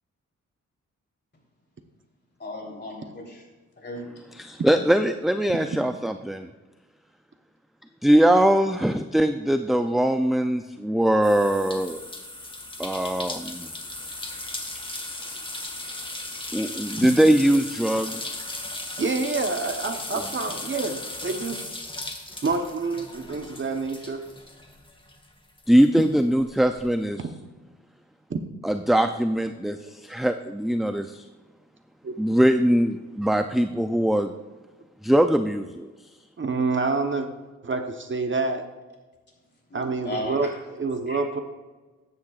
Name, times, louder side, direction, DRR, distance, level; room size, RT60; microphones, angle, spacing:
voice 1, 2.4-3.4 3.8-4.0 39.7-40.5 41.1-41.2, left 1 dB, 35° left, -1 dB, 3.5 m, -35 dB
voice 2, 4.3-6.5 8.0-12.0 12.8-13.7 16.5-18.3 25.7-27.2 28.6-31.2 32.2-34.3 35.0-35.9, right 1 dB, ahead, 7 dB, 0.4 m, -21 dB
sound 1, 11.2-25.3 25.6-26.8, left 2 dB, 15° left, 1.5 m, -36 dB
voice 3, 19.0-21.7 22.4-24.2 27.2-27.3 28.3-28.4 32.0-32.1 36.4-37.3 37.6-38.7 39.7-41.4, right 3 dB, 40° right, 6 dB, 1.0 m, -27 dB
14.5 x 10.0 x 2.4 m, 1.3 s
wide cardioid pair, 110°, 29 cm